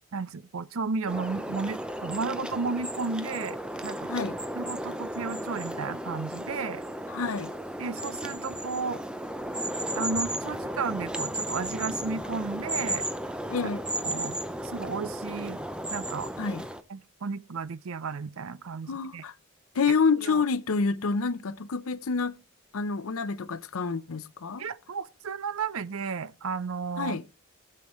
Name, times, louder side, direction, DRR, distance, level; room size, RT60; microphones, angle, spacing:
voice 1, 0.1-3.6 3.8-4.1 4.6-6.8 7.8-9.0 9.9-13.1 13.6-13.7 14.0-14.4 14.6-15.6 15.9-16.3 16.9-19.2 20.2-20.4 24.6-27.2, right 4 dB, 75° right, 0.5 m, -33 dB
sound 1, 1.1-16.8, right 1 dB, 5° right, 0.5 m, -34 dB
voice 2, 7.1-7.5 13.5-13.8 16.4-16.6 18.9-19.3 19.7-22.4 22.7-24.7 27.0-27.2, left 4 dB, 80° left, 0.6 m, -28 dB
16.0 x 6.8 x 3.0 m
head